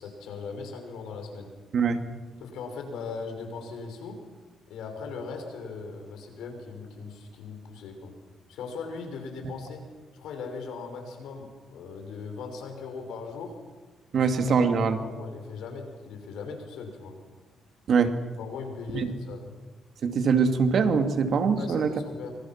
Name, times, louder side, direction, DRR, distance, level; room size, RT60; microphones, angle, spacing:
voice 1, 0.0-1.5 2.4-4.2 4.7-8.1 8.5-9.8 10.1-13.6 14.2-14.3 15.0-17.1 18.4-19.6 21.6-22.4, left 4 dB, 85° left, 4 dB, 6.0 m, -39 dB
voice 2, 14.1-15.0 17.9-18.1 18.9-19.1 20.0-21.9, right 5 dB, 60° right, 6 dB, 2.6 m, -23 dB
27.5 x 25.0 x 6.1 m, 1.3 s
cardioid pair, 90°, 0 cm